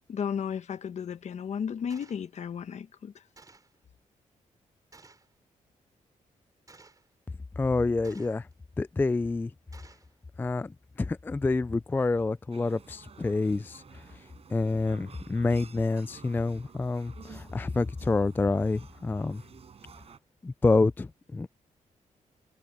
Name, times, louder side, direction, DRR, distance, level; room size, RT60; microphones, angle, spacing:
voice 1, 0.0-3.1, left 7 dB, 60° left, 1.1 m, -34 dB
Gunshot gunfire, 1.9-2.2 3.4-3.8 4.9-5.3 6.7-7.1 8.0-8.5 9.7-10.1, right 3 dB, 25° right, 4.7 m, -55 dB
voice 2, 7.6-8.5 8.8-9.5 10.4-14.0 14.5-19.4 20.4-21.5, left 3 dB, 15° left, 0.3 m, -28 dB
sound 1, 12.5-20.2, right 6 dB, 50° right, 5.0 m, -52 dB
wide cardioid pair, 125°, 13 cm